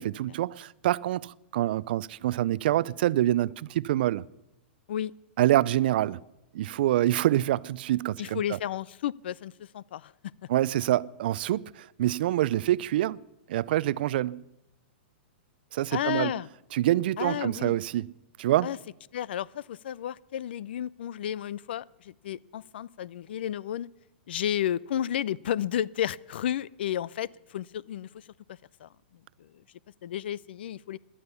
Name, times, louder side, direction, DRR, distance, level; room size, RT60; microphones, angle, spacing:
voice 1, 0.0-4.2 5.4-6.2 6.5-8.6 10.5-13.2 13.5-14.4 15.7-16.3 16.7-18.1 18.4-18.7, right 14 dB, 60° right, 0.5 m, -26 dB
voice 2, 8.2-10.1 15.9-16.5 17.2-17.7 18.6-18.8 19.1-23.9 24.3-28.2 28.8-28.9 30.0-31.0, left 10 dB, 70° left, 0.4 m, -32 dB
17.5 x 11.0 x 6.9 m
hypercardioid pair, 140°, 6 cm